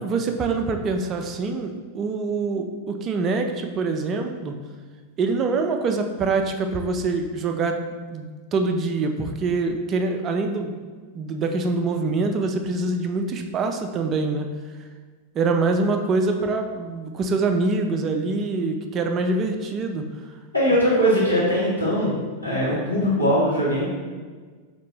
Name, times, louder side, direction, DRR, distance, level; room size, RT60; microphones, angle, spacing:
voice 1, 0.0-4.5 5.2-7.8 8.1-10.8 11.1-14.5 15.3-20.1, right 3 dB, 30° right, 5 dB, 0.4 m, -25 dB
voice 2, 20.5-22.1 22.4-23.9, equal, 90° left, -9 dB, 1.3 m, -20 dB
4.1 x 2.8 x 3.2 m, 1.5 s
figure-of-eight pair, 90°, 0 cm